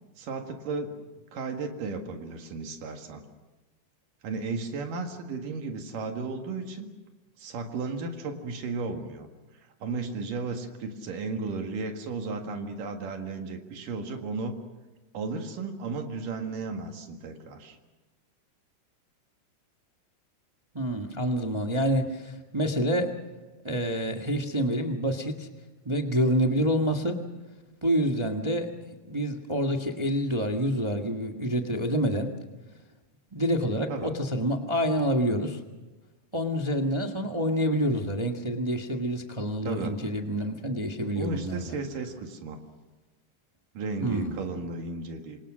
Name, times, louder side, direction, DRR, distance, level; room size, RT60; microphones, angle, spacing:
voice 1, 0.2-1.0 1.3-3.2 4.2-6.9 7.4-9.3 9.8-14.6 15.1-17.8 33.9-34.1 39.6-40.0 41.2-42.6 43.8-45.4, right 3 dB, 80° right, 4 dB, 3.5 m, -34 dB
voice 2, 20.7-23.1 23.6-25.5 25.8-27.2 27.8-28.7 29.1-32.3 33.3-35.6 36.3-41.7 44.0-44.5, equal, 30° right, 3 dB, 0.5 m, -27 dB
27.5 x 25.5 x 6.3 m, 1.2 s
omnidirectional pair, 3.8 m